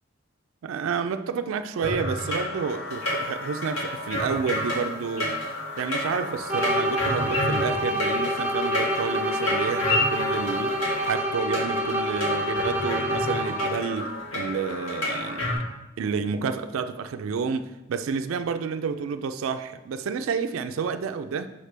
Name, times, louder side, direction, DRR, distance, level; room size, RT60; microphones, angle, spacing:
voice 1, 0.6-5.4 5.8-15.6 16.0-21.5, right 5 dB, 80° right, 0.3 m, -30 dB
sound 1, 1.8-15.5, left 1 dB, 85° left, 2.2 m, -31 dB
sound 2, 2.9-11.2, left 3 dB, 50° left, 1.4 m, -36 dB
sound 3, 6.5-14.0, equal, 10° right, 0.5 m, -27 dB
6.5 x 5.5 x 3.3 m
head